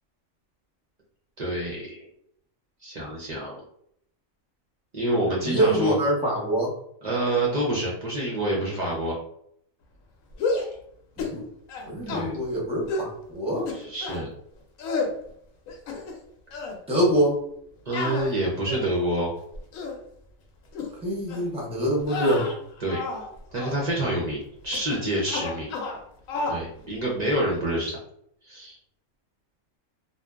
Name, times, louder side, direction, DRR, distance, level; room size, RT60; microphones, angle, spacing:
voice 1, 1.4-2.1 2.8-3.6 4.9-6.0 7.0-9.2 12.1-12.4 13.7-14.3 17.9-19.3 22.8-23.0 23.5-25.7 26.5-28.0 28.4-28.8, right 1 dB, 55° right, -4 dB, 0.5 m, -27 dB
voice 2, 5.4-6.7 11.2-11.5 11.9-13.7 16.9-17.3 21.0-22.4, right 1 dB, 5° right, -4 dB, 0.6 m, -24 dB
sound 1, 10.3-10.7 11.2-11.4 11.7-12.3 12.9-13.1 13.7-14.2 14.8-15.1 15.7-16.2 16.5-16.8 17.9-19.0 19.5-20.0 20.7-20.9 21.3-21.5 22.0-23.3 23.5-23.8 24.7-25.0 25.2-26.0 26.3-26.6, left 3 dB, 75° left, 0.9 m, -31 dB
2.7 x 2.1 x 2.3 m, 0.70 s
omnidirectional pair, 1.5 m